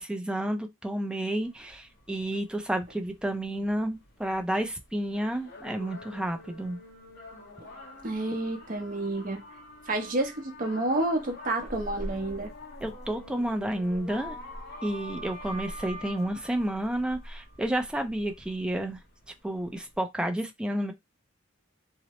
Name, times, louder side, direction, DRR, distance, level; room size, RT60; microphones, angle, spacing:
voice 1, 0.0-6.8 12.8-14.4 14.8-19.0 19.4-20.9, right 1 dB, 5° right, 0.4 m, -31 dB
sound 1, 1.4-20.0, left 1 dB, 55° left, 0.9 m, -45 dB
voice 2, 8.0-9.4 9.9-12.5, right 2 dB, 45° right, 0.7 m, -29 dB
2.8 x 2.0 x 2.9 m
head